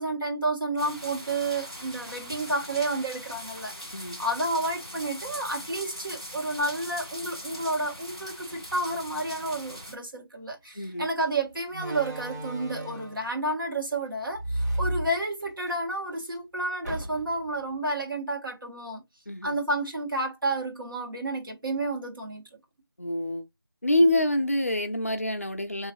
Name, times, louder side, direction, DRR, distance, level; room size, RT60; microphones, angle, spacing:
voice 1, 0.0-19.0 19.4-22.4, right 2 dB, 60° right, 1.8 m, -30 dB
sound 1, 0.8-9.9, equal, 15° right, 0.8 m, -41 dB
Slam, 10.6-10.8 11.7-13.3 14.3-15.7 16.1-16.2 16.8-17.5, right 1 dB, 45° right, 1.6 m, -33 dB
voice 2, 10.7-11.1 19.3-19.6 23.0-23.5 23.8-25.9, left 1 dB, 35° left, 0.5 m, -26 dB
4.6 x 3.1 x 2.6 m
figure-of-eight pair, 175°, 13 cm